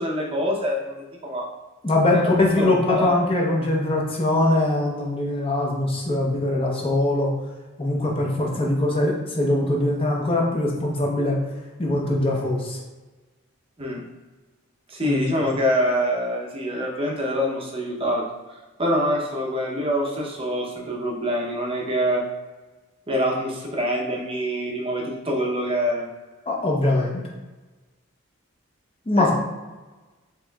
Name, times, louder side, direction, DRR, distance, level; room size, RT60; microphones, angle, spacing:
voice 1, 0.0-1.5 2.1-3.1 13.8-14.0 14.9-18.2 18.5-22.2 23.1-26.1 29.1-29.3, equal, 25° right, -1 dB, 0.6 m, -25 dB
voice 2, 1.8-7.3 7.8-11.4 11.8-12.8 15.1-15.3 26.5-27.2 29.1-29.3, left 2 dB, 25° left, -2 dB, 0.6 m, -22 dB
4.4 x 3.6 x 2.2 m, 1.2 s
head